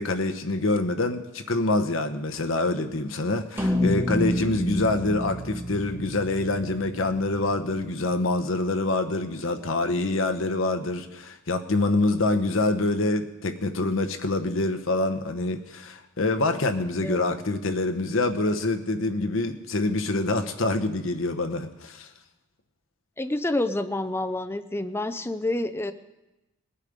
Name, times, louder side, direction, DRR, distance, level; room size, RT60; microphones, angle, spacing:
voice 1, 0.0-22.1, left 2 dB, 65° left, 7 dB, 1.0 m, -26 dB
sound 1, 3.6-8.1, left 1 dB, 10° right, 1.5 m, -29 dB
voice 2, 23.2-25.9, left 1 dB, 10° left, 9 dB, 0.5 m, -28 dB
20.0 x 8.2 x 5.2 m, 1.0 s
head